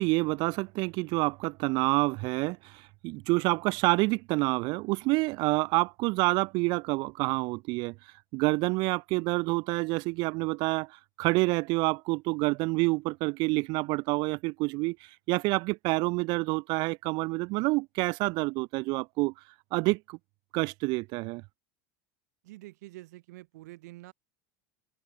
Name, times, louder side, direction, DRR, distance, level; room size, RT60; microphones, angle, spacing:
voice 1, 0.0-7.9 8.3-10.9 11.2-15.0 15.3-19.3 19.7-20.2 20.5-21.4, right 25 dB, 55° right, 0.7 m, -28 dB
voice 2, 22.4-24.1, right 18 dB, 80° right, 3.8 m, -47 dB
supercardioid pair, 125°, 9 cm